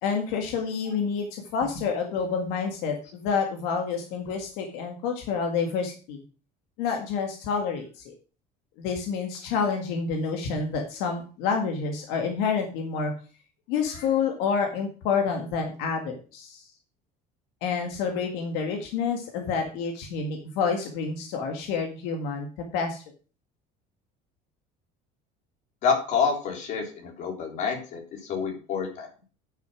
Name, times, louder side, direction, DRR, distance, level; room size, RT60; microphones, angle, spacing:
voice 1, 0.0-6.2 6.8-8.1 8.8-13.1 13.7-16.7 17.6-22.5 22.7-23.0, left 5 dB, 80° left, 3 dB, 1.8 m, -28 dB
voice 2, 25.8-28.0 28.3-29.1, left 6 dB, 45° left, 2 dB, 3.4 m, -27 dB
9.2 x 6.7 x 6.1 m, 0.37 s
cardioid pair, 170°, 17 cm